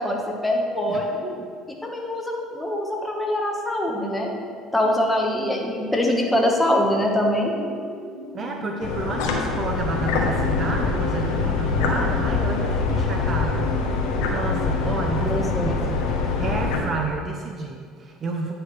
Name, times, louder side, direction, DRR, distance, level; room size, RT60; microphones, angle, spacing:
voice 1, 0.0-1.2 1.8-4.4 4.7-7.5 15.2-15.8, left 1 dB, 10° left, -1 dB, 1.3 m, -23 dB
voice 2, 0.9-1.5 8.3-13.8 14.3-18.5, right 3 dB, 40° right, 2 dB, 0.7 m, -30 dB
sound 1, 5.4-12.6, left 1 dB, 20° right, 2.1 m, -38 dB
sound 2, 8.8-16.8, left 4 dB, 75° left, 1.1 m, -24 dB
9.5 x 5.9 x 3.3 m, 2.1 s
supercardioid pair, 85°, 0 cm